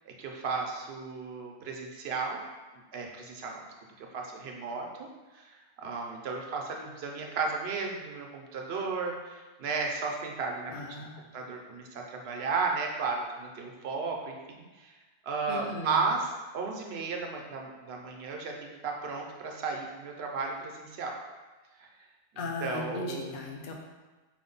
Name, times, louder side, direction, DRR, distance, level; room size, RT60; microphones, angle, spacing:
voice 1, 0.0-2.4 2.9-3.6 4.1-4.9 5.3-11.0 11.3-14.9 15.2-21.1 21.8-21.9 22.6-23.3, right 4 dB, 85° right, 1 dB, 0.9 m, -34 dB
voice 2, 10.7-11.2 15.5-16.1 22.4-23.7, left 2 dB, 60° left, 1 dB, 0.7 m, -37 dB
4.7 x 2.1 x 3.8 m, 1.2 s
omnidirectional pair, 1.0 m